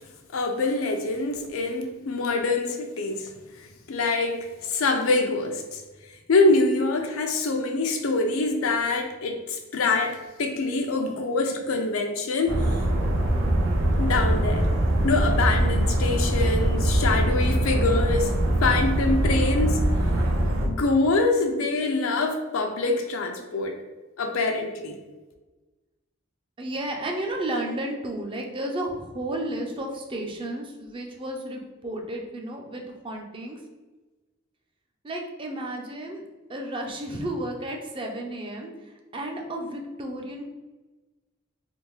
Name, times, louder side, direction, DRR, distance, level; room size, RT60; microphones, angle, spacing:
voice 1, 0.3-3.3 3.6-5.8 6.3-12.6 14.0-14.7 15.0-18.3 18.6-19.8 20.6-23.8 24.2-25.0, left 3 dB, 90° left, 3 dB, 0.5 m, -25 dB
sound 1, 12.5-20.7, right 1 dB, 80° right, 0.6 m, -23 dB
voice 2, 26.6-33.6 35.0-36.2 36.5-38.7 39.1-40.4, right 1 dB, 25° right, 1 dB, 0.4 m, -32 dB
3.4 x 2.3 x 3.1 m, 1.2 s
head